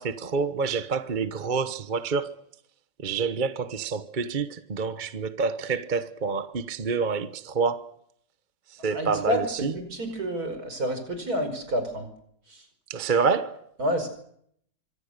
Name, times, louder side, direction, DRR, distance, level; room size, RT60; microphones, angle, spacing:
voice 1, 0.0-2.3 3.0-7.9 8.7-9.7 12.9-13.7, right 5 dB, 35° right, 1.0 m, -27 dB
voice 2, 8.9-12.1 12.5-12.6 13.8-14.1, equal, 55° right, 5.7 m, -29 dB
27.0 x 24.5 x 6.7 m
omnidirectional pair, 1.9 m